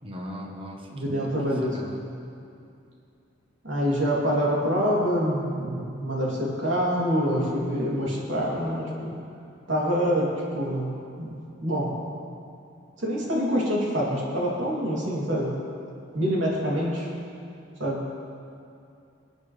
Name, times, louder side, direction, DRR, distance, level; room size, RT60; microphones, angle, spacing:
voice 1, 0.0-1.3 1.7-2.0, equal, 25° right, 0 dB, 1.2 m, -38 dB
voice 2, 0.9-1.8 3.6-9.1 9.7-11.9 13.0-15.6 16.1-17.1 17.8-18.1, equal, 80° right, -5 dB, 2.9 m, -26 dB
24.0 x 8.8 x 3.3 m, 2.5 s
head